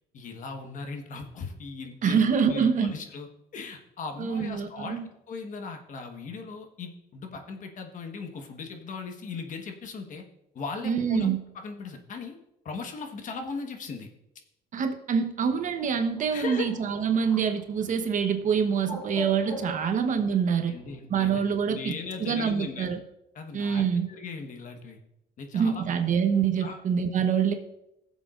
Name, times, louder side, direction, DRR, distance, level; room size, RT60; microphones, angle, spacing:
voice 1, 0.1-10.2 10.5-11.3 11.6-12.4 12.6-14.1 16.3-16.7 19.8-19.9 20.7-21.4 21.7-22.9 23.3-25.0 25.4-26.1 26.6-26.8 27.1-27.3, left 4 dB, 50° left, 4 dB, 1.4 m, -38 dB
voice 2, 2.0-2.9 4.2-5.0 10.8-11.4 14.7-20.7 21.1-21.9 22.2-23.0 23.5-24.1 25.5-27.5, right 7 dB, 50° right, 6 dB, 1.0 m, -25 dB
Bird, 15.5-21.0, left 1 dB, 30° left, 3.1 m, -43 dB
16.0 x 7.4 x 2.5 m, 0.84 s
cardioid pair, 110°, 17 cm